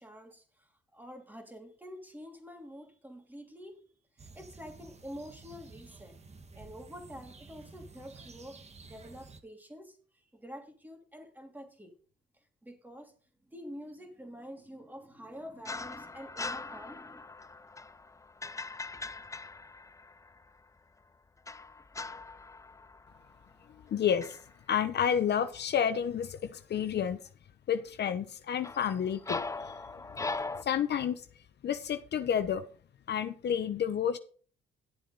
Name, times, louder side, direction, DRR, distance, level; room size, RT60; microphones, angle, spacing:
voice 1, 0.0-3.9 4.1-6.1 6.5-11.9 12.3-13.1 13.4-17.2, equal, 10° right, 2.9 m, -48 dB
sound 1, 4.2-9.4, right 4 dB, 35° right, 1.5 m, -52 dB
sound 2, 15.7-20.5 21.5-23.9 24.2-24.5 28.6-30.6, left 3 dB, 15° left, 0.5 m, -40 dB
voice 2, 23.7-24.4 24.7-27.2 27.7-30.3 30.6-31.3 31.6-32.7 33.1-34.2, left 8 dB, 60° left, 0.9 m, -30 dB
11.5 x 7.6 x 4.0 m
cardioid pair, 90°, 20 cm